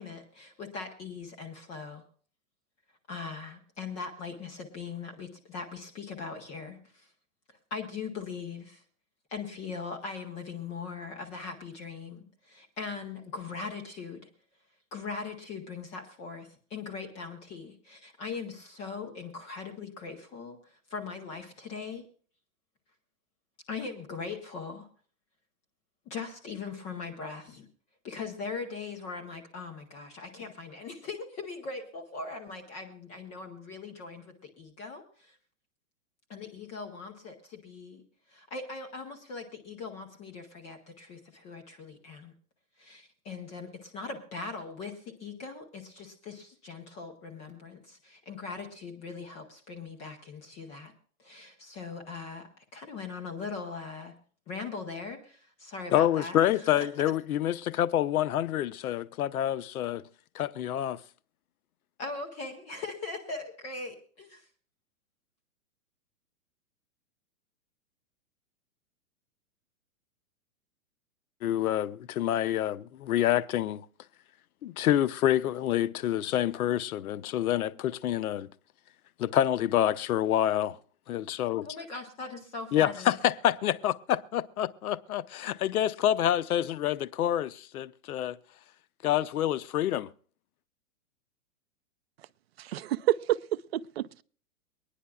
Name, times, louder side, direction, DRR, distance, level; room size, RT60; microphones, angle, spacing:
voice 1, 0.0-2.0 3.1-7.1 7.5-8.8 9.3-14.3 14.9-22.1 23.7-24.9 26.1-27.7 28.0-35.4 36.3-38.0 38.3-42.3 42.8-50.9 51.2-54.1 54.5-56.9 62.0-64.5 81.6-83.2, left 4 dB, 15° left, 0.7 m, -40 dB
voice 2, 55.9-60.0 60.3-61.0 71.4-73.8 74.6-78.5 79.2-80.8 81.1-81.7 82.7-88.4 89.0-90.1, left 12 dB, 85° left, 0.7 m, -27 dB
voice 3, 92.6-94.2, right 14 dB, 45° right, 0.5 m, -29 dB
24.0 x 10.0 x 2.3 m
hypercardioid pair, 160°, 43 cm